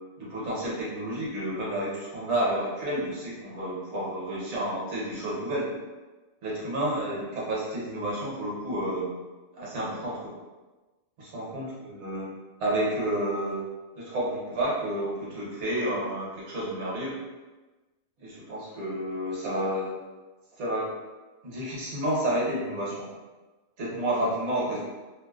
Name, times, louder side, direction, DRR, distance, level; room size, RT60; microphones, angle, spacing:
voice 1, 0.2-5.7 6.4-9.1 9.6-10.3 11.2-12.3 12.6-13.6 14.0-17.1 18.2-19.9 20.6-20.9 21.4-23.1 23.8-24.8, right 1 dB, 65° right, -6 dB, 1.1 m, -30 dB
2.7 x 2.0 x 2.2 m, 1.2 s
omnidirectional pair, 1.4 m